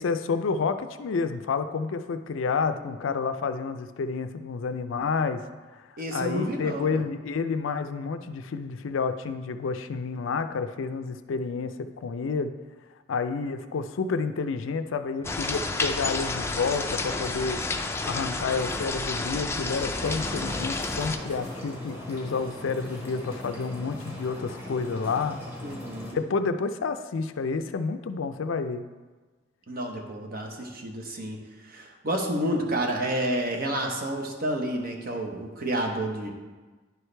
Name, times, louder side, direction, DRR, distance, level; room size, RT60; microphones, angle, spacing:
voice 1, 0.0-5.4 5.7-5.8 6.1-12.5 13.1-17.6 18.0-25.4 26.1-28.8, left 4 dB, 85° left, 9 dB, 0.4 m, -29 dB
voice 2, 2.8-3.2 6.0-7.0 25.6-26.2 29.7-31.4 31.6-36.3, right 1 dB, 50° right, 2 dB, 1.0 m, -30 dB
sound 1, 15.2-21.2, left 3 dB, 15° left, 0.4 m, -30 dB
sound 2, 19.8-26.1, left 1 dB, 15° right, 1.5 m, -39 dB
10.5 x 4.6 x 3.3 m, 1.3 s
head